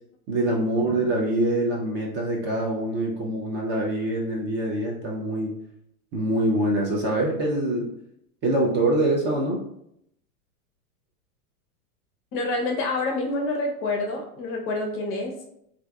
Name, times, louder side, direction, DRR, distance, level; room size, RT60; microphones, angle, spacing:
voice 1, 0.3-5.6 6.1-7.9 8.4-9.7, right 1 dB, 25° right, -2 dB, 0.4 m, -24 dB
voice 2, 12.3-15.3, left 2 dB, 30° left, 2 dB, 0.5 m, -27 dB
3.4 x 2.5 x 2.2 m, 0.74 s
hypercardioid pair, 105°, 44 cm